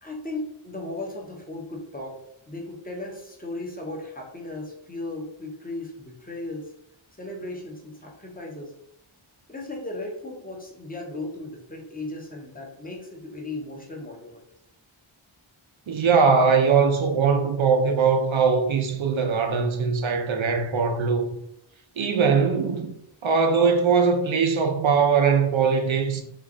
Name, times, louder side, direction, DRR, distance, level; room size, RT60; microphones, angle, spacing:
voice 1, 0.0-2.2 2.5-6.7 7.2-8.7 9.5-14.4, left 2 dB, 15° left, 0.9 m, -36 dB
voice 2, 15.9-21.3 22.0-22.9 23.2-26.2, right 5 dB, 70° right, 0.6 m, -21 dB
3.1 x 2.4 x 3.7 m
wide cardioid pair, 70°, 49 cm